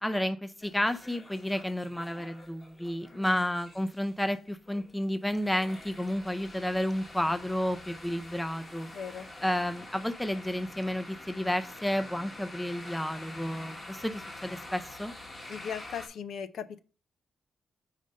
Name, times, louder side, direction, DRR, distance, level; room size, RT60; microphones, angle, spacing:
voice 1, 0.0-8.9 9.4-15.1, left 1 dB, 10° left, 0.5 m, -31 dB
sound 1, 0.6-16.1, left 1 dB, 30° left, 1.5 m, -47 dB
voice 2, 3.1-3.4 8.9-9.3 15.5-16.8, left 7 dB, 80° left, 0.5 m, -38 dB
5.0 x 4.1 x 5.2 m
cardioid pair, 105°, 0 cm